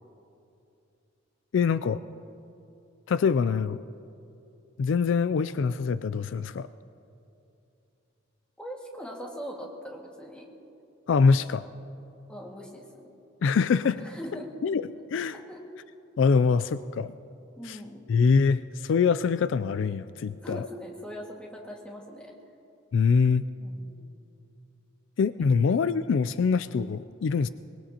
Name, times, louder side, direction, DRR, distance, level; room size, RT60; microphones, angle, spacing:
voice 1, 1.5-2.0 3.1-3.8 4.8-6.7 11.1-11.6 13.4-14.0 14.6-15.4 16.2-17.1 17.6-17.8 18.1-20.7 22.9-23.4 25.2-27.5, left 5 dB, 65° left, 14 dB, 0.3 m, -24 dB
voice 2, 8.6-10.5 12.3-12.9 14.0-14.5 15.3-15.6 17.6-18.0 20.4-22.3 23.6-24.2, equal, 5° left, -2 dB, 1.8 m, -41 dB
23.5 x 20.5 x 2.9 m, 2.7 s
head